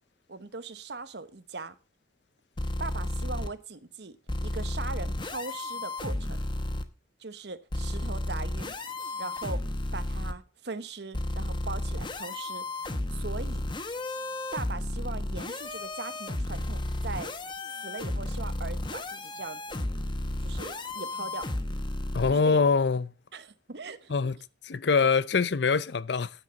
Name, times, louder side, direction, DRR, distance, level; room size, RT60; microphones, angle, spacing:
voice 1, 0.3-1.7 2.8-4.2 4.4-6.4 7.2-8.7 9.2-9.6 9.9-12.6 13.1-13.6 14.5-17.3 17.7-19.8 20.4-21.5 22.3-22.6 23.3-24.3, right 3 dB, 70° right, 1.0 m, -40 dB
sound 1, 2.6-3.5 4.3-6.8 7.7-10.3 11.1-22.3, left 1 dB, 25° left, 0.9 m, -33 dB
voice 2, 22.1-23.1 24.1-24.4 24.6-26.3, left 5 dB, 75° left, 0.6 m, -24 dB
9.5 x 9.1 x 5.2 m
head